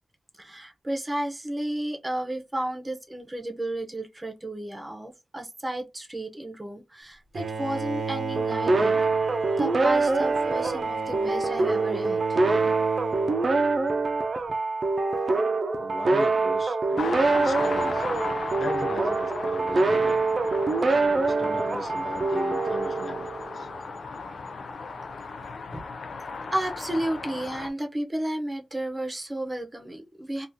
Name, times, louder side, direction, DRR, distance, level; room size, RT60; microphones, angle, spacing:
voice 1, 0.4-9.0 9.6-12.4 25.4-25.8 26.5-30.5, right 1 dB, 20° right, 0.7 m, -32 dB
Bowed string instrument, 7.3-14.1, right 4 dB, 90° right, 0.7 m, -34 dB
sound 1, 8.4-23.7, right 3 dB, 55° right, 0.5 m, -25 dB
voice 2, 15.7-18.0 18.6-20.2 21.0-23.7, left 2 dB, 55° left, 0.8 m, -37 dB
sound 2, 17.0-27.7, left 4 dB, 85° left, 0.4 m, -36 dB
3.5 x 2.4 x 2.7 m
wide cardioid pair, 85°, 0 cm